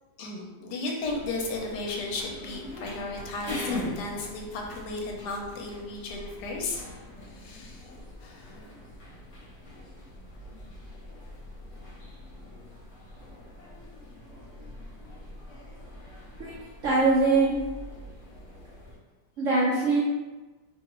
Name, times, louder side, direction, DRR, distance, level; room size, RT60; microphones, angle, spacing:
voice 1, 0.2-6.8 7.3-7.9 8.2-8.6, left 2 dB, 75° left, 0 dB, 1.1 m, -34 dB
sound 1, 1.0-19.0, left 2 dB, 50° left, 0.9 m, -42 dB
voice 2, 16.8-17.6 19.4-20.0, right 3 dB, 90° right, -7 dB, 0.6 m, -22 dB
2.8 x 2.3 x 2.9 m, 1.2 s
omnidirectional pair, 1.9 m